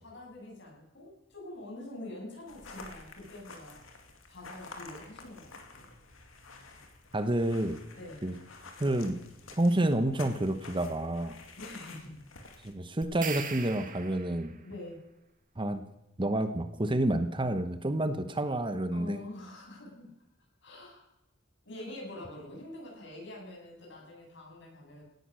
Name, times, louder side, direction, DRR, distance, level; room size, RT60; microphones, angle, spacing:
voice 1, 0.0-3.8 4.3-5.9 7.9-8.3 11.5-12.2 14.6-15.0 18.9-20.1 20.6-21.1 21.6-25.0, left 1 dB, 65° left, -1 dB, 7.5 m, -45 dB
sound 1, 2.5-12.7, left 3 dB, 90° left, 2.2 m, -50 dB
voice 2, 7.1-7.8 8.2-8.3 8.8-9.2 9.6-11.4 12.6-14.5 15.6-15.8 16.2-19.2, right 1 dB, 25° right, 10 dB, 1.0 m, -29 dB
sound 2, 13.0-14.6, right 6 dB, 45° right, 1.5 m, -39 dB
17.5 x 11.0 x 6.3 m, 0.90 s
head